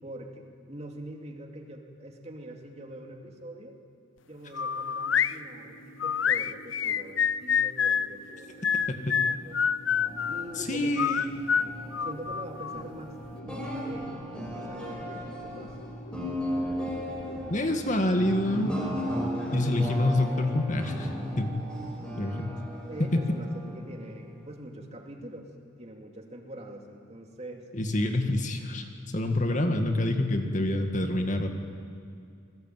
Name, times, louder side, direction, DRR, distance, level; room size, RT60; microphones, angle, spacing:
voice 1, 0.0-3.8 4.3-9.0 9.2-9.6 10.3-11.4 12.0-13.2 13.4-14.1 14.5-15.9 22.8-25.5 25.8-27.7, right 1 dB, 35° right, 3 dB, 2.6 m, -43 dB
sound 1, 4.4-21.3, right 1 dB, 65° left, 2.0 m, -49 dB
sound 2, 4.5-5.3 6.0-8.1 8.6-10.4 11.0-12.8, left 7 dB, 80° left, 0.7 m, -26 dB
sound 3, 9.9-24.5, equal, 5° left, 5.2 m, -36 dB
voice 2, 10.6-11.3 17.5-18.8 19.5-21.6 22.2-22.6 23.0-23.2 27.7-31.5, left 1 dB, 40° left, 5 dB, 2.1 m, -27 dB
28.5 x 20.0 x 9.2 m, 2.3 s
head